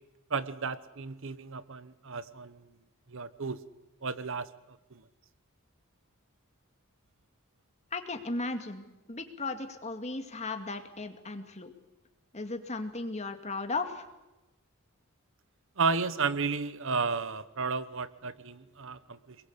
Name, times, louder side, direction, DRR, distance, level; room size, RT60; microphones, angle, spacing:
voice 1, 0.3-2.6 3.1-3.6 4.0-5.0 15.8-19.4, right 4 dB, 60° right, 15 dB, 1.0 m, -33 dB
voice 2, 7.9-11.7 12.3-14.1, left 3 dB, 30° left, 6 dB, 2.3 m, -36 dB
27.0 x 22.0 x 8.3 m, 1.0 s
head